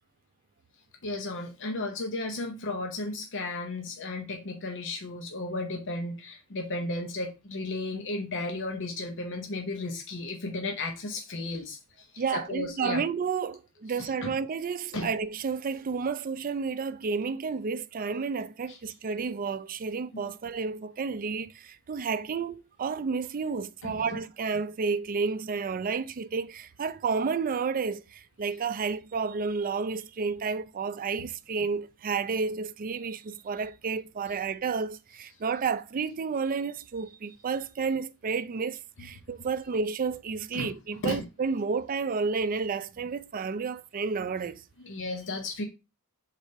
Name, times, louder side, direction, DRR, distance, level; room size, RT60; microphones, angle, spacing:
voice 1, 1.0-13.0 14.0-14.3 14.9-15.1 18.7-18.8 23.8-24.2 40.5-41.3 44.8-45.6, left 2 dB, 55° left, 0.8 m, -34 dB
voice 2, 12.2-44.6, right 5 dB, 40° right, 0.4 m, -31 dB
4.9 x 4.1 x 5.4 m
head